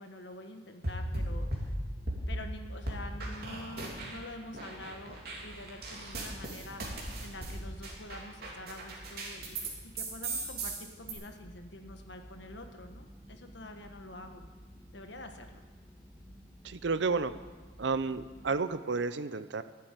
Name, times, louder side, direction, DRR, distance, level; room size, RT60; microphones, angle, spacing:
voice 1, 0.0-1.7 2.3-14.5 14.9-15.6, left 1 dB, 70° left, 5 dB, 1.4 m, -47 dB
sound 1, 0.8-2.5 2.9-4.3 4.5-9.7 10.0-11.1, right 2 dB, 55° right, 3.0 m, -37 dB
sound 2, 0.9-18.5, equal, 5° left, 1.3 m, -53 dB
voice 2, 16.6-17.3 17.8-19.6, right 4 dB, 70° right, 13 dB, 0.6 m, -31 dB
12.0 x 9.2 x 9.1 m, 1.4 s
head